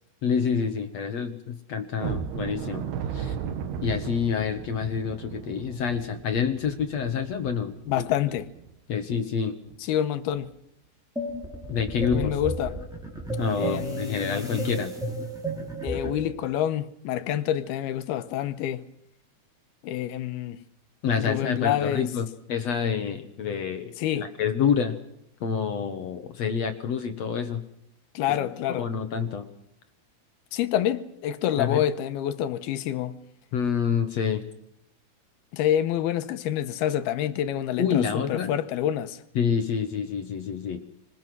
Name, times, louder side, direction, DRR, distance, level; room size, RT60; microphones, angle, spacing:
voice 1, 0.2-3.4 3.8-7.7 8.9-9.5 11.7-12.4 13.4-14.9 21.0-25.0 25.4-27.6 28.7-29.5 31.6-31.8 33.5-34.5 37.8-38.5 39.4-40.8, left 7 dB, 55° left, 2.1 m, -27 dB
sound 1, 2.0-8.7 9.1-9.2 9.7-9.8 10.3-10.5, right 8 dB, 90° right, 3.6 m, -36 dB
voice 2, 7.9-8.5 9.8-10.5 12.1-12.8 13.6-14.7 15.8-18.9 19.8-20.6 21.2-22.1 24.0-24.3 28.1-28.9 30.5-33.2 35.5-39.2, left 11 dB, 85° left, 3.0 m, -27 dB
sound 2, 11.2-16.3, right 1 dB, ahead, 3.5 m, -33 dB
26.5 x 20.0 x 6.3 m
omnidirectional pair, 4.5 m